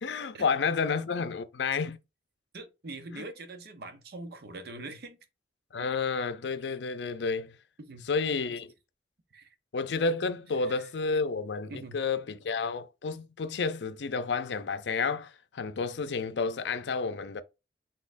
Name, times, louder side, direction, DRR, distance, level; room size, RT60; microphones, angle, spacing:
voice 1, 0.0-2.0 3.1-3.2 5.7-7.5 8.1-8.7 9.7-17.4, left 4 dB, 80° left, 0.5 m, -30 dB
voice 2, 2.5-5.2 7.8-8.1 9.3-9.5 10.6-10.9 11.7-12.0, right 2 dB, 60° right, 0.8 m, -43 dB
4.2 x 3.7 x 2.5 m
head